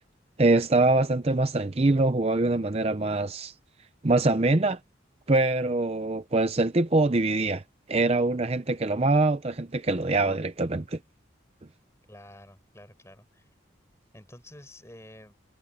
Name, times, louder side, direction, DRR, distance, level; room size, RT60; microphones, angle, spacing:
voice 1, 0.4-3.5 4.0-4.8 5.3-7.6 7.9-11.0, right 2 dB, 30° right, 0.6 m, -24 dB
voice 2, 12.1-13.5 14.1-15.4, left 1 dB, 15° left, 6.3 m, -49 dB
head